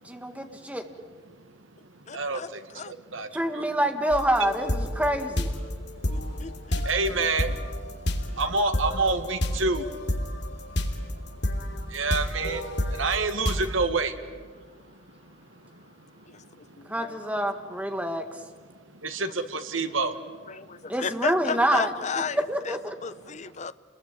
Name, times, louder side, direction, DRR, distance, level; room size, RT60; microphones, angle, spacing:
voice 1, 0.0-0.8 3.3-5.5 16.9-18.2 20.9-21.9 22.5-22.9, right 1 dB, 5° right, 6 dB, 2.0 m, -26 dB
voice 2, 1.3-3.6 5.7-6.5 6.8-16.9 17.9-18.0 18.7-20.9, right 3 dB, 85° right, 8 dB, 1.9 m, -31 dB
voice 3, 2.1-2.9 6.1-6.8 16.3-17.2 19.2-19.3 20.5-23.7, left 5 dB, 35° left, 15 dB, 0.7 m, -34 dB
sound 1, 4.1-13.7, left 1 dB, 60° left, 3.0 m, -30 dB
29.0 x 22.0 x 9.2 m, 1.5 s
head